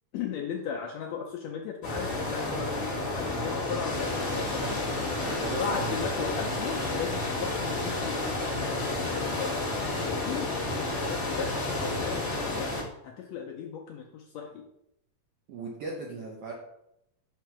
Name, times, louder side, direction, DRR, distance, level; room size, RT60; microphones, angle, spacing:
voice 1, 0.1-4.8 5.5-8.3 9.1-12.7 13.0-14.6, left 7 dB, 80° left, 1 dB, 1.6 m, -37 dB
sound 1, 1.8-12.8, left 2 dB, 45° left, 0.9 m, -31 dB
voice 2, 4.3-4.8 5.2-5.9 15.5-16.5, right 3 dB, 75° right, -2 dB, 1.4 m, -38 dB
5.8 x 3.1 x 5.7 m, 0.80 s
omnidirectional pair, 3.6 m